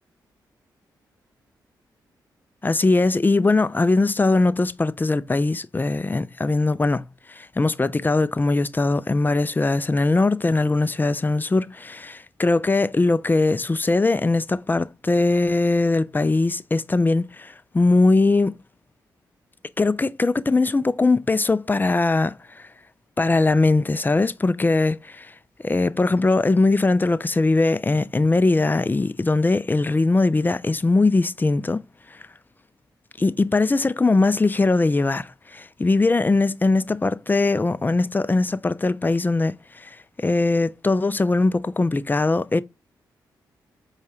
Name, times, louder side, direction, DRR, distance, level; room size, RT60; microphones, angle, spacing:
voice 1, 2.6-18.6 19.8-22.7 23.2-25.3 25.6-31.8 32.1-32.2 33.2-42.6, left 3 dB, 25° left, 0.4 m, -21 dB
4.7 x 2.3 x 2.8 m
supercardioid pair, 50°, 8 cm